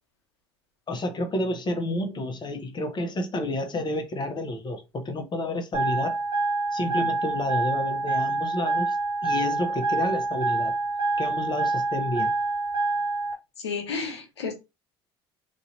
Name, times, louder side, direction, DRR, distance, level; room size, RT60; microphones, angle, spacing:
voice 1, 0.9-6.2 6.7-9.0 9.2-10.7 11.2-12.3, left 1 dB, 35° left, 1.0 m, -30 dB
sound 1, 5.7-13.3, right 3 dB, 35° right, 1.6 m, -26 dB
voice 2, 13.6-14.5, left 5 dB, 90° left, 0.9 m, -31 dB
3.1 x 2.7 x 2.7 m
hypercardioid pair, 65°, 14 cm